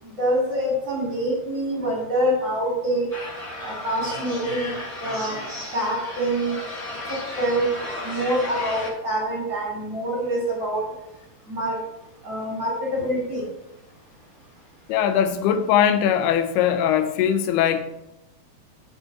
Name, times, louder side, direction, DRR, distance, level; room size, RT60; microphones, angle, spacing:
voice 1, 0.0-3.1 3.6-4.7 5.0-5.4 5.7-6.5 7.1-7.7 8.0-10.9 11.5-11.8 12.2-13.5, right 1 dB, 30° right, 3.7 m, -25 dB
sound 1, 3.1-8.9, left 2 dB, 20° left, 4.1 m, -34 dB
voice 2, 14.9-17.8, left 9 dB, 85° left, 2.8 m, -20 dB
12.5 x 8.2 x 2.9 m
omnidirectional pair, 4.5 m